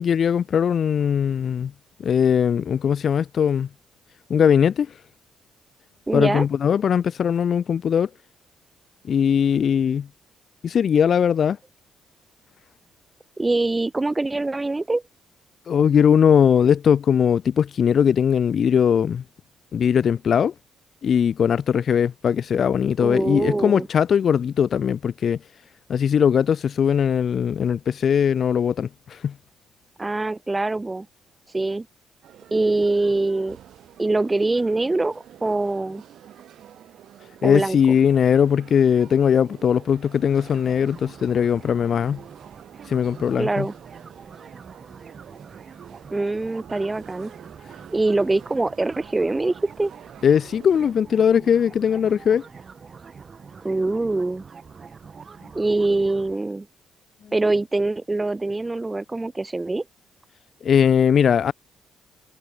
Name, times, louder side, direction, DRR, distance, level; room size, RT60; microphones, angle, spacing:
voice 1, 0.0-1.7 2.0-3.7 4.3-4.9 6.1-8.1 9.1-10.1 10.6-11.6 15.7-19.2 19.7-20.5 21.0-25.4 25.9-29.3 37.4-42.2 42.9-43.7 50.2-52.4 60.6-61.5, left 8 dB, 55° left, 0.3 m, -20 dB
voice 2, 6.1-6.4 13.4-15.0 23.0-23.9 30.0-31.1 31.5-31.9 32.5-33.6 34.0-36.0 37.4-37.8 43.4-43.7 46.1-47.3 47.9-49.9 53.6-54.4 55.5-56.7 57.3-59.8, right 2 dB, 20° right, 0.6 m, -23 dB
sound 1, 32.2-50.9, right 11 dB, 70° right, 2.4 m, -47 dB
sound 2, 40.4-56.4, right 5 dB, 40° right, 4.5 m, -45 dB
cardioid pair, 90°, 0 cm